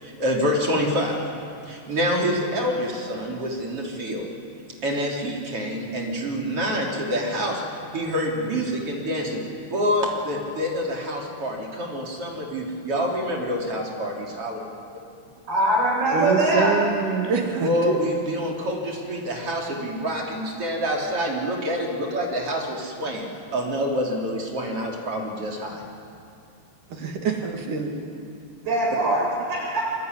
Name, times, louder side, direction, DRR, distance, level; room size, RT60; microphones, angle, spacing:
voice 1, 0.0-1.2 1.7-4.3 4.8-7.6 7.9-9.4 9.7-14.6 17.6-25.8, equal, 35° right, -1 dB, 4.0 m, -27 dB
voice 2, 15.5-16.8 28.6-29.8, right 1 dB, 85° right, -2 dB, 9.3 m, -22 dB
voice 3, 16.1-18.0 26.9-28.1, right 5 dB, 55° right, 2 dB, 3.3 m, -25 dB
25.0 x 24.5 x 9.7 m, 2.5 s
omnidirectional pair, 4.8 m